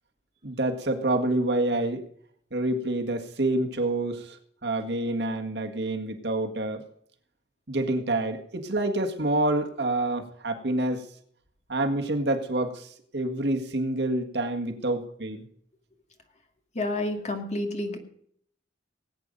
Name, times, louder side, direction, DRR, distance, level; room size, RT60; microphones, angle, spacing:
voice 1, 0.4-2.0 2.5-4.4 4.6-6.8 7.7-11.0 11.7-15.5, right 2 dB, 65° right, 4 dB, 1.8 m, -27 dB
voice 2, 16.7-18.0, left 1 dB, 40° left, 4 dB, 2.2 m, -29 dB
19.5 x 8.9 x 5.3 m, 0.66 s
head